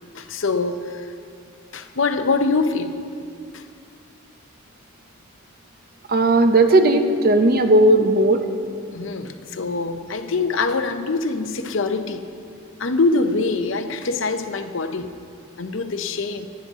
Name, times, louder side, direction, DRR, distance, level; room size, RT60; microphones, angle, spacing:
voice 1, 0.1-1.1 1.7-3.0 3.5-3.6 8.9-12.2 12.8-15.1 15.6-16.5, left 3 dB, 65° left, 8 dB, 0.7 m, -24 dB
voice 2, 6.1-8.4, right 2 dB, 45° right, 7 dB, 0.7 m, -16 dB
18.0 x 11.5 x 3.7 m, 2.4 s
head